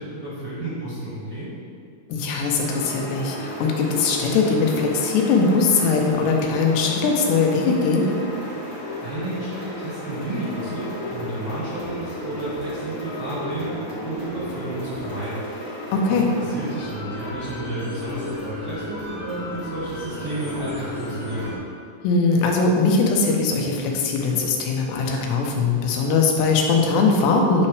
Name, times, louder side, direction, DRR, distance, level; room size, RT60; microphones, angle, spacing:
voice 1, 0.0-1.5 9.0-15.4 16.1-16.2 16.5-21.5, right 1 dB, 45° right, -11 dB, 1.8 m, -31 dB
voice 2, 2.1-8.1 15.9-16.3 22.0-27.7, left 4 dB, 80° left, 1 dB, 2.9 m, -20 dB
sound 1, 2.6-21.6, left 1 dB, 55° left, 1.6 m, -33 dB
9.2 x 5.7 x 3.4 m, 2.3 s
omnidirectional pair, 5.1 m